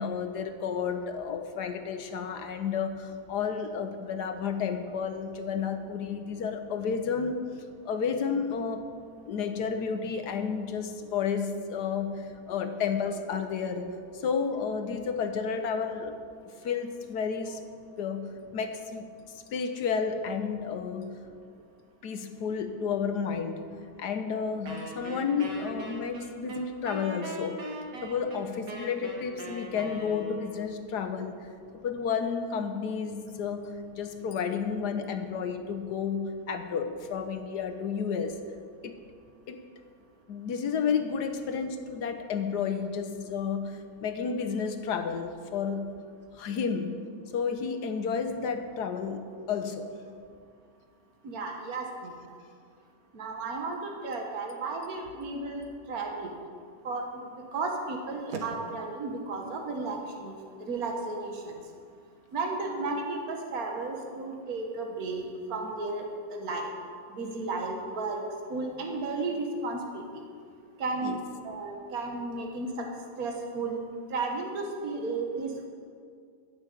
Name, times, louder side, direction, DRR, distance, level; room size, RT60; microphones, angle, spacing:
voice 1, 0.0-7.4 7.8-8.8 9.2-16.2 16.6-17.6 18.0-21.2 22.0-23.6 24.0-27.7 28.0-31.4 31.8-38.4 38.8-38.9 39.5-39.6 40.3-46.0 46.3-47.0 47.3-49.9 71.0-71.2, left 6 dB, 75° left, 7 dB, 1.5 m, -31 dB
Wind instrument woodwind instrument, 24.7-30.7, equal, 80° right, 2.2 m, -40 dB
voice 2, 51.2-52.1 53.1-56.3 56.8-57.2 57.5-61.5 62.3-66.0 66.3-66.7 67.1-68.2 68.5-70.0 70.8-71.2 71.4-72.9 73.2-73.8 74.1-75.7, right 3 dB, 60° right, 1 dB, 1.9 m, -33 dB
13.0 x 6.9 x 8.4 m, 2.2 s
omnidirectional pair, 1.8 m